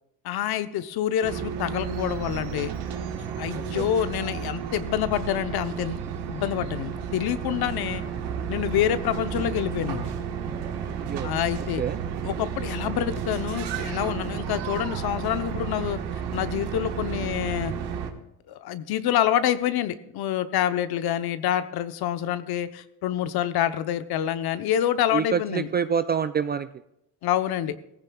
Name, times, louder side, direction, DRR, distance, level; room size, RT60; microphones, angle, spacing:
voice 1, 0.2-2.7 3.4-6.0 6.3-8.0 8.5-10.1 11.2-11.8 12.2-16.0 16.3-17.7 18.5-25.7 27.2-27.8, left 11 dB, 60° left, 11 dB, 0.9 m, -27 dB
sound 1, 1.2-18.1, right 7 dB, 70° right, 1.5 m, -32 dB
voice 2, 3.5-3.9 11.0-11.3 11.8-12.0 25.1-26.7, right 7 dB, 25° right, 12 dB, 0.3 m, -27 dB
18.0 x 15.0 x 2.3 m, 0.82 s
supercardioid pair, 90°, 42 cm